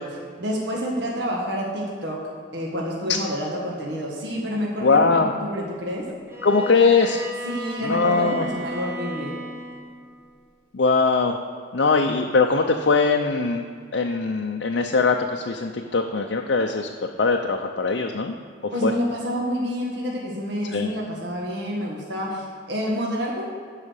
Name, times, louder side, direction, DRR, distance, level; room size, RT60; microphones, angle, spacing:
voice 1, 0.4-2.2 2.5-6.1 7.4-9.4 18.7-23.5, equal, 65° right, -2 dB, 1.6 m, -28 dB
voice 2, 4.8-5.3 6.4-7.3 7.8-8.5 10.7-11.4 11.7-13.6 13.9-18.3 18.8-18.9 20.7-20.9, left 4 dB, 65° left, 2 dB, 0.5 m, -21 dB
Bowed string instrument, 6.3-10.0, equal, 15° right, 0.9 m, -34 dB
12.5 x 5.0 x 6.5 m, 2.2 s
head